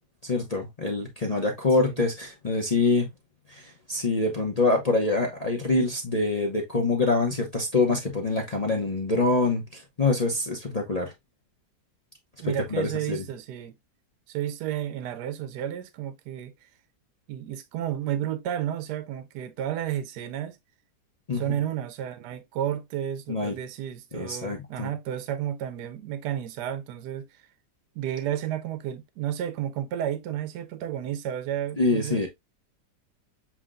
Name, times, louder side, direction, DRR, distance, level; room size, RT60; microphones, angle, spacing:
voice 1, 0.2-3.1 3.5-11.1 12.4-13.2 21.3-21.4 23.3-23.5 24.1-24.9 31.8-32.3, left 3 dB, 40° left, 0.5 m, -25 dB
voice 2, 12.4-13.7 14.3-16.7 17.3-20.6 21.3-27.3 27.9-32.3, right 11 dB, 70° right, 1.1 m, -32 dB
7.2 x 2.9 x 2.4 m
omnidirectional pair, 2.0 m